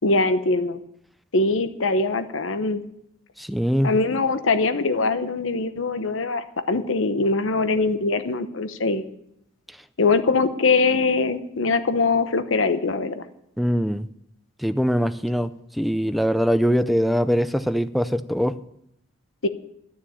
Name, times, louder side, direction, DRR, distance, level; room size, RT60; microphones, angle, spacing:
voice 1, 0.0-0.8 1.3-2.8 3.8-9.1 10.0-13.2 19.4-19.5, left 3 dB, 85° left, 11 dB, 0.9 m, -22 dB
voice 2, 3.4-3.9 13.6-14.1 14.6-18.6, equal, ahead, 11 dB, 0.5 m, -22 dB
12.5 x 7.2 x 9.0 m, 0.76 s
head